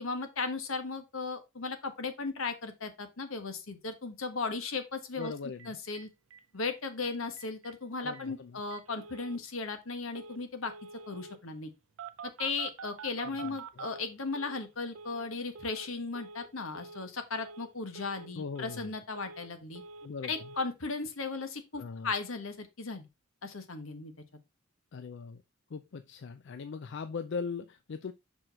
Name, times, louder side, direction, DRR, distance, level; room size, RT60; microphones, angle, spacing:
voice 1, 0.0-5.3 5.7-6.1 6.5-10.7 11.1-11.7 12.4-19.8 20.2-23.1 23.4-24.1, left 4 dB, 80° left, 1.3 m, -36 dB
voice 2, 5.2-5.8 8.0-8.6 13.2-13.8 18.3-18.9 20.0-20.3 21.8-22.1 24.9-25.4 25.7-28.1, left 5 dB, 60° left, 0.4 m, -40 dB
Telephone, 5.2-5.3 5.6-5.7 5.9-6.0 6.3-6.7 7.0-7.1 7.4-7.7 8.1-8.2 8.7-9.4 10.1-10.4 10.6-11.4 12.0-14.7 14.9-15.3 15.5-15.9 16.1-16.5 16.7-17.1 17.3-17.7 17.9-18.3 18.5-19.5 19.7-20.1 20.3-20.6, right 5 dB, 75° right, 0.5 m, -47 dB
6.2 x 4.8 x 4.1 m
head